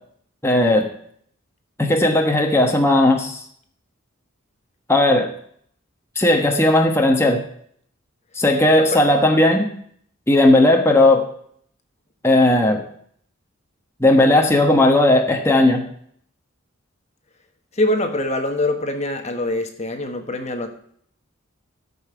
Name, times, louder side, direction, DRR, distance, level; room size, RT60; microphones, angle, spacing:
voice 1, 0.4-0.9 1.8-3.4 4.9-5.3 6.1-7.4 8.4-9.7 10.3-11.3 12.2-12.8 14.0-15.8, left 1 dB, 15° left, 2 dB, 1.2 m, -16 dB
voice 2, 17.7-20.7, left 1 dB, 35° left, 6 dB, 1.2 m, -24 dB
13.5 x 5.6 x 6.7 m, 0.63 s
head